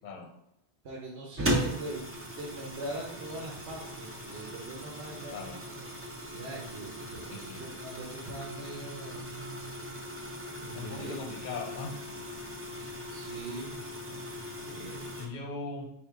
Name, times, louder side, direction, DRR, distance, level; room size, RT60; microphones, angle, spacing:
voice 1, 0.8-2.1 2.4-5.4 5.7-5.9 6.3-9.3 10.6-11.2 12.8-13.9 14.6-15.1, right 2 dB, 70° right, -2 dB, 1.0 m, -41 dB
sound 1, 1.4-15.3, equal, 15° right, 0.4 m, -38 dB
voice 2, 5.3-5.6 7.2-7.7 10.7-12.1 15.2-15.8, left 3 dB, 50° left, 3 dB, 0.8 m, -39 dB
3.7 x 2.9 x 4.6 m, 0.81 s
omnidirectional pair, 1.2 m